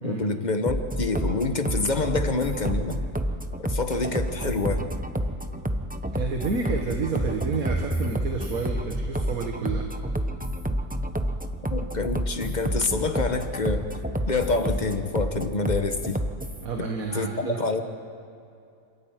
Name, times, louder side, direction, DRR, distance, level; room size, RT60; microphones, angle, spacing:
voice 1, 0.0-3.0 3.6-4.8 11.7-13.9 14.3-16.2 17.1-17.8, left 3 dB, 30° left, 7 dB, 1.1 m, -27 dB
sound 1, 0.7-16.6, right 1 dB, 15° right, 0.3 m, -29 dB
voice 2, 6.1-9.9 16.6-17.6, right 4 dB, 55° right, 2 dB, 1.9 m, -30 dB
27.5 x 13.5 x 9.1 m, 2.6 s
omnidirectional pair, 1.8 m